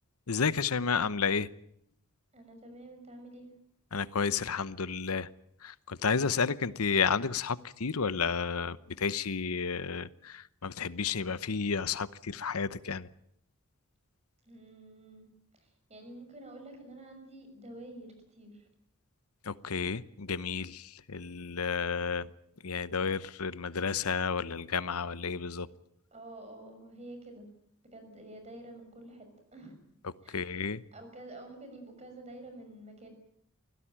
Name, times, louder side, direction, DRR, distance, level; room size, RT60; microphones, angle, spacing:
voice 1, 0.3-1.5 3.9-5.3 5.6-13.1 19.4-22.3 22.6-25.7 30.3-30.8, left 5 dB, 90° left, 0.9 m, -31 dB
voice 2, 2.3-3.5 14.4-15.3 15.5-18.7 26.1-27.5 27.9-29.8 30.2-30.6 30.9-33.1, right 1 dB, 30° right, 6.0 m, -49 dB
24.0 x 16.5 x 8.8 m
head